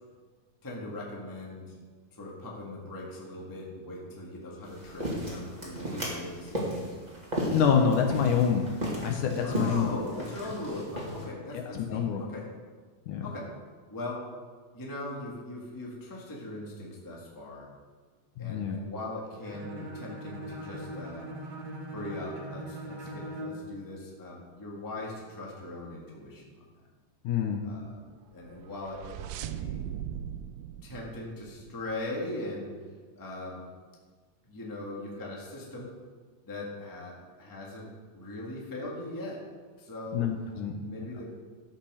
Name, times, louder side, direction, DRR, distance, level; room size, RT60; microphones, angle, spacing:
voice 1, 0.6-1.7 2.1-6.9 9.4-12.5 13.2-13.5 13.9-14.3 14.7-17.7 18.4-21.2 21.9-26.6 27.6-28.0 28.3-29.8 30.8-32.7 33.1-33.7 34.5-35.9 36.5-39.4 39.8-40.3 40.7-41.3, left 2 dB, 10° left, -3 dB, 1.2 m, -40 dB
sound 1, 4.6-11.2, equal, 15° right, 1.7 m, -35 dB
voice 2, 7.5-8.7 9.0-9.9 11.7-12.2 13.1-13.3 18.4-18.8 27.2-27.7 40.1-40.9, left 7 dB, 75° left, 3 dB, 2.1 m, -26 dB
Bowed string instrument, 19.4-23.7, right 1 dB, 50° right, 1.7 m, -40 dB
sound 2, 28.4-32.1, right 10 dB, 80° right, 2.0 m, -39 dB
13.0 x 5.9 x 6.4 m, 1.5 s
omnidirectional pair, 4.0 m